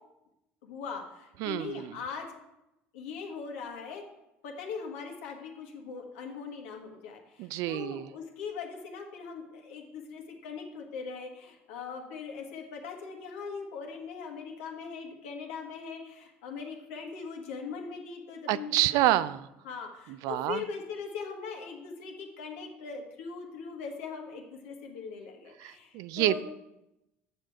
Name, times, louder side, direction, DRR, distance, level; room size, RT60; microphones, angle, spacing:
voice 1, 0.6-2.3 2.9-4.0 4.4-18.7 19.6-26.4, left 5 dB, 75° left, 2 dB, 1.5 m, -40 dB
voice 2, 1.4-2.0 7.4-8.1 18.5-19.5 20.2-20.6 25.6-26.4, right 14 dB, 65° right, 16 dB, 0.4 m, -28 dB
7.4 x 6.8 x 4.6 m, 0.88 s
hypercardioid pair, 70°, 7 cm